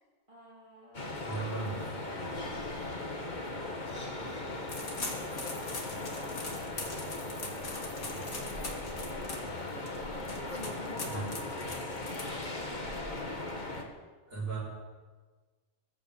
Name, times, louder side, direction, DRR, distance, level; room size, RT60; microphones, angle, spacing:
voice 1, 0.3-13.6, right 1 dB, 20° right, -7 dB, 3.1 m, -54 dB
sound 1, 0.9-13.8, left 2 dB, 35° left, 1.8 m, -38 dB
voice 2, 1.2-1.8 10.9-11.3 14.3-14.6, right 4 dB, 45° right, -3 dB, 5.8 m, -36 dB
sound 2, 4.7-12.7, left 3 dB, 85° left, 2.6 m, -42 dB
22.0 x 8.7 x 7.2 m, 1.4 s
omnidirectional pair, 1.4 m